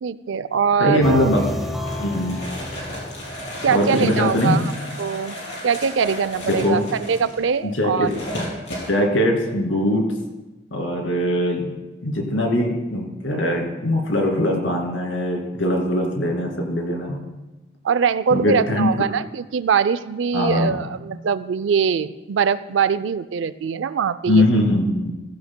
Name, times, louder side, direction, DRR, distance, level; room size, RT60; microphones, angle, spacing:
voice 1, 0.0-1.3 3.6-4.6 5.0-5.4 5.6-8.1 17.8-24.6, right 6 dB, 75° right, 15 dB, 0.4 m, -22 dB
voice 2, 0.8-1.5 2.0-2.4 3.7-4.6 6.5-6.8 7.7-8.1 8.9-10.1 10.7-11.7 12.0-17.2 18.3-18.9 20.3-20.8 24.3-25.1, left 1 dB, 80° left, 1 dB, 2.5 m, -21 dB
sound 1, 1.0-4.2, left 1 dB, ahead, 0.8 m, -31 dB
sound 2, 1.4-8.9, left 1 dB, 65° left, 3.7 m, -34 dB
15.5 x 15.0 x 2.2 m, 1.1 s
head